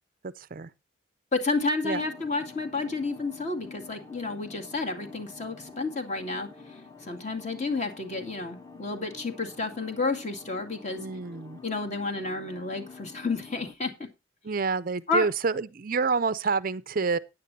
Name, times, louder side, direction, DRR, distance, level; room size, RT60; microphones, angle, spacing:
voice 1, 0.4-0.7 1.8-2.0 11.0-11.6 14.4-17.2, right 4 dB, 40° right, 0.5 m, -28 dB
voice 2, 1.3-6.5 7.0-11.1 11.6-14.1 15.1-15.3, left 3 dB, 35° left, 2.2 m, -30 dB
sound 1, 1.9-13.7, left 4 dB, 15° left, 1.2 m, -47 dB
15.0 x 9.9 x 2.7 m
head